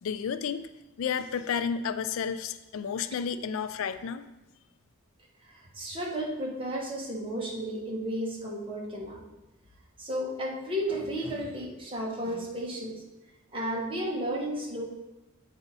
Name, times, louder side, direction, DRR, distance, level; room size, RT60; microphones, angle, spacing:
voice 1, 0.0-0.7 1.0-4.3, left 7 dB, 70° left, 11 dB, 0.3 m, -31 dB
voice 2, 5.4-9.2 10.0-13.0 13.5-14.8, equal, 25° right, -2 dB, 1.3 m, -33 dB
8.0 x 4.1 x 4.0 m, 1.0 s
head